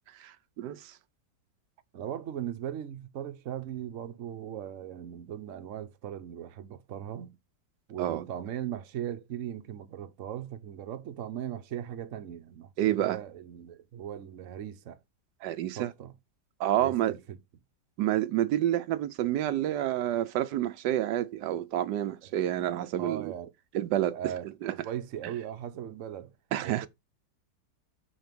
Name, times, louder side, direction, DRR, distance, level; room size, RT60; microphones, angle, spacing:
voice 1, 0.1-1.0 8.0-8.3 12.8-13.2 15.4-15.9 16.6-17.2 18.0-23.3 23.7-24.3 24.6-24.7 26.5-26.9, right 12 dB, 85° right, 1.2 m, -29 dB
voice 2, 1.9-7.4 7.9-15.0 15.7-16.1 16.8-17.4 22.2-22.3 23.0-23.5 24.1-26.3 26.6-26.9, right 10 dB, 55° right, 1.0 m, -38 dB
5.5 x 4.4 x 6.0 m
omnidirectional pair, 1.8 m